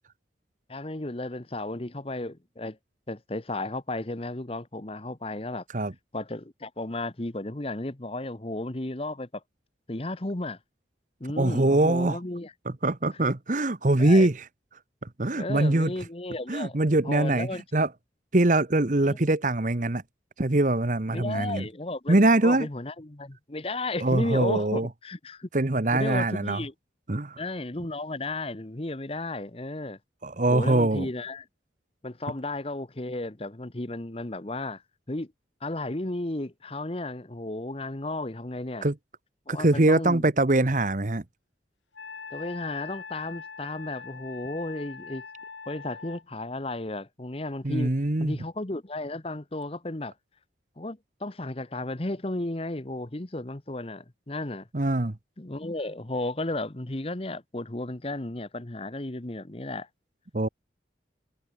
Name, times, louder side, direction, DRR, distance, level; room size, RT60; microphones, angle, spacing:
voice 1, 0.7-2.8 3.1-5.6 6.1-9.3 9.9-10.6 11.2-12.5 14.0-14.3 15.3-16.8 17.0-17.6 19.0-19.2 21.1-25.5 25.9-26.7 27.4-30.0 30.5-31.4 32.0-34.8 35.1-35.3 35.6-38.9 39.5-40.3 42.3-45.2 45.7-47.9 48.2-50.1 50.8-54.7 55.4-59.9, left 2 dB, 30° left, 1.1 m, -34 dB
voice 2, 11.4-12.2 12.8-14.5 15.0-15.9 16.5-17.9 18.3-20.0 20.4-21.7 22.1-22.7 24.0-24.9 25.5-26.6 27.1-27.4 30.2-31.1 38.8-38.9 39.5-41.2 47.6-48.3 54.7-55.2 60.3-60.5, right 2 dB, 45° right, 1.1 m, -23 dB
Wind instrument woodwind instrument, 41.9-46.2, left 5 dB, 90° left, 1.9 m, -42 dB
head